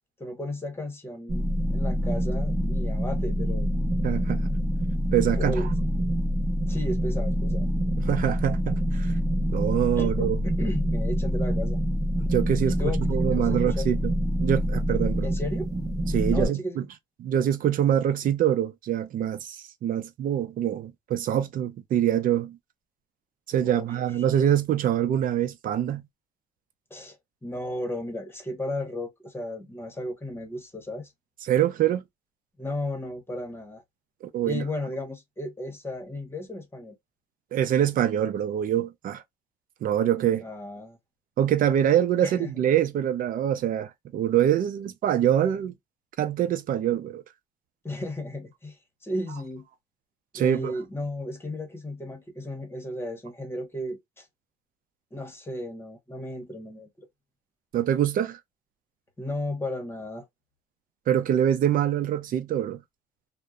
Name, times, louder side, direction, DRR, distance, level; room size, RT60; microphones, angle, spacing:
voice 1, 0.2-3.7 5.4-5.7 6.6-7.7 10.0-11.8 12.7-13.9 15.2-15.7 16.3-16.9 23.6-23.8 26.9-27.2 27.4-31.1 32.6-33.8 34.4-37.0 40.4-41.0 42.2-42.5 47.8-49.7 50.3-54.3 55.1-57.1 59.2-60.2, left 1 dB, 15° left, 1.1 m, -34 dB
sound 1, 1.3-16.5, equal, 20° right, 1.0 m, -26 dB
voice 2, 4.0-4.5 5.1-5.7 8.0-9.1 9.5-10.4 12.2-14.1 14.4-15.3 16.1-16.8 17.2-22.6 23.5-26.0 31.4-32.0 34.2-34.6 37.5-39.2 39.8-40.5 41.4-45.7 46.2-47.2 50.3-50.7 57.7-58.4 61.1-62.8, right 10 dB, 55° right, 0.6 m, -25 dB
2.7 x 2.1 x 2.3 m
cardioid pair, 110°, 17 cm